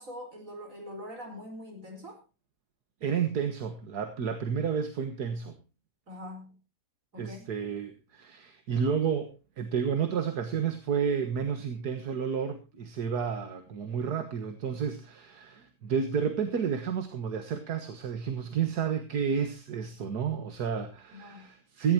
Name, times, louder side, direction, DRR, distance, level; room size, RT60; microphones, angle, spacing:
voice 1, 0.0-2.2 6.1-6.6 7.1-7.5 21.1-21.5, left 1 dB, 55° right, 4 dB, 4.9 m, -43 dB
voice 2, 3.0-5.6 7.2-9.3 9.6-21.9, right 7 dB, 75° right, 8 dB, 1.9 m, -31 dB
17.0 x 15.5 x 2.8 m, 0.30 s
omnidirectional pair, 1.7 m